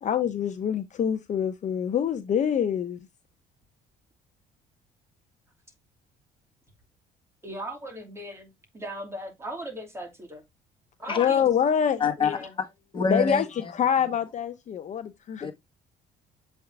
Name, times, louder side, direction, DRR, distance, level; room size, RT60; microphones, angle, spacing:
voice 1, 0.0-3.0 11.1-12.3 13.1-15.4, left 8 dB, 45° left, 0.9 m, -26 dB
voice 2, 7.4-8.5 8.7-10.4 11.0-11.4 12.2-12.5, equal, 15° right, 2.6 m, -37 dB
voice 3, 12.0-12.3 12.9-13.7 15.4-15.5, left 4 dB, 30° left, 1.7 m, -26 dB
7.7 x 3.7 x 3.5 m
cardioid pair, 110°, 17 cm